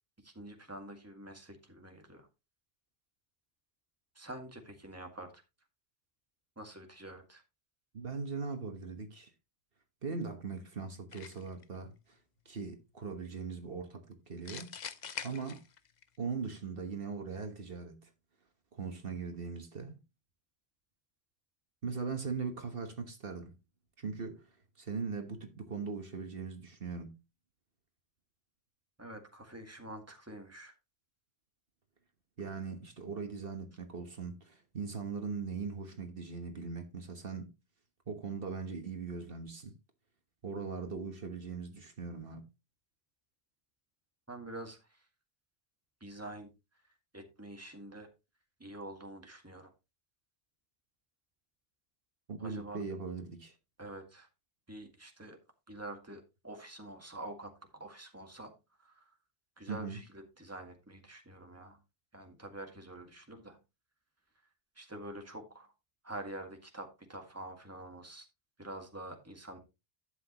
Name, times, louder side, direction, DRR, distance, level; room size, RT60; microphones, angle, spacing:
voice 1, 0.2-2.3 4.2-5.3 6.6-7.4 29.0-30.7 44.3-45.1 46.0-46.5 47.1-48.1 48.6-49.7 52.4-52.8 53.8-54.3 54.7-55.4 55.7-58.5 58.8-59.1 59.6-61.8 62.1-63.6 64.8-65.7 66.0-68.3 68.6-69.6, right 1 dB, 15° right, 1.9 m, -47 dB
voice 2, 7.9-9.3 10.0-12.2 12.4-14.7 15.2-15.6 16.2-18.1 18.7-20.0 21.8-23.5 24.0-24.5 24.8-27.2 32.4-37.5 38.1-39.7 40.4-42.4 52.3-53.5 59.7-60.0, right 5 dB, 65° right, 1.5 m, -40 dB
sound 1, 11.1-11.6 14.5-16.0, left 6 dB, 50° left, 0.8 m, -44 dB
11.5 x 7.9 x 3.0 m
omnidirectional pair, 1.0 m